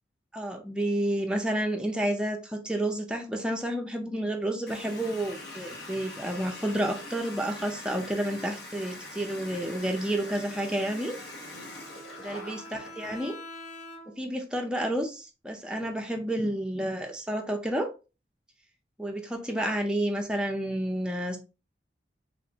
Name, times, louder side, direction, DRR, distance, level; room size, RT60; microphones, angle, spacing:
voice 1, 0.3-11.1 12.2-13.4 14.2-17.9 19.0-21.4, right 1 dB, 5° right, 2 dB, 0.5 m, -30 dB
Water tap faucet, 4.7-13.2, left 2 dB, 75° left, 1.1 m, -43 dB
Bowed string instrument, 11.4-14.4, left 1 dB, 40° left, 0.5 m, -45 dB
3.3 x 2.5 x 2.8 m, 0.30 s
head